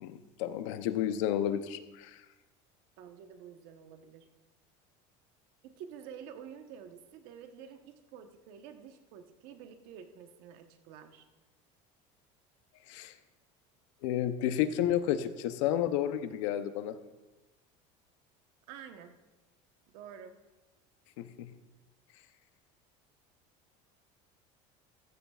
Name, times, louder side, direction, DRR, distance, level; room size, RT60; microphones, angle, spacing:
voice 1, 0.0-2.2 12.9-13.1 14.0-17.0 21.2-21.5, left 11 dB, 90° left, 11 dB, 0.7 m, -31 dB
voice 2, 3.0-4.3 5.6-11.3 18.7-19.2 19.9-20.3, right 8 dB, 70° right, 6 dB, 1.1 m, -49 dB
14.5 x 14.5 x 2.4 m, 1.1 s
cardioid pair, 145°, 16 cm